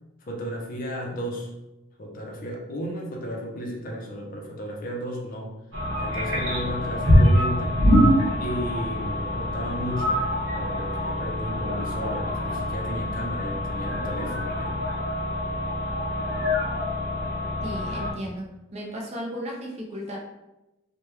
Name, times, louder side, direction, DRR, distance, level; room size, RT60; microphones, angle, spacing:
voice 1, 0.2-1.5 2.0-5.5 6.0-7.8 8.4-10.2 10.5-14.8, equal, 40° left, -1 dB, 0.5 m, -34 dB
sound 1, 5.7-18.1, left 1 dB, 60° right, 1.1 m, -24 dB
voice 2, 17.6-20.2, equal, 30° right, -1 dB, 0.5 m, -35 dB
3.0 x 2.2 x 3.4 m, 0.96 s
head